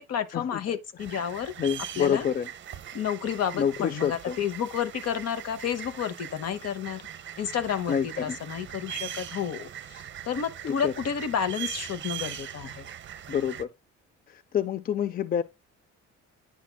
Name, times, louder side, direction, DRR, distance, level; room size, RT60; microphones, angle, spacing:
voice 1, 0.0-1.5 2.0-2.2 2.9-7.0 7.4-12.9, left 8 dB, 55° left, 0.9 m, -31 dB
sound 1, 1.0-13.6, right 10 dB, 40° right, 0.7 m, -41 dB
voice 2, 1.6-2.5 3.5-4.4 7.9-8.4 10.6-10.9 13.3-13.7 14.3-15.4, left 8 dB, 30° left, 0.4 m, -28 dB
9.5 x 5.8 x 2.2 m
cardioid pair, 115°, 31 cm